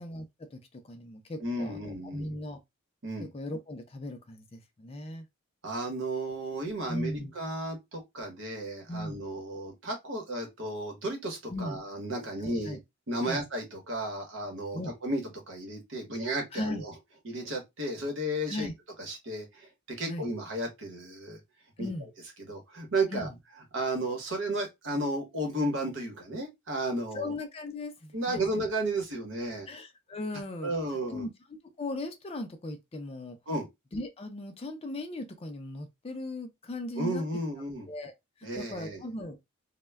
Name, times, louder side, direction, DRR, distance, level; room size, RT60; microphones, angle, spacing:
voice 1, 0.0-2.6 3.3-5.3 6.9-7.3 8.9-9.2 11.5-11.8 12.4-12.8 13.2-13.4 14.7-14.9 16.5-16.8 18.5-18.7 20.0-20.3 21.8-22.1 23.1-23.3 27.1-28.4 29.7-30.7 31.1-31.3 31.8-33.4 33.9-37.2 37.9-38.1 38.4-39.4, left 1 dB, 30° left, 0.4 m, -38 dB
voice 2, 1.4-2.3 3.0-3.3 5.6-12.8 13.1-16.9 17.2-18.7 19.1-19.7 20.0-21.4 21.8-21.9 22.4-23.3 23.7-27.3 28.1-29.7 30.6-31.3 33.5-33.6 37.0-37.9 38.4-39.0, right 1 dB, 60° right, 0.9 m, -33 dB
2.1 x 2.1 x 3.3 m
head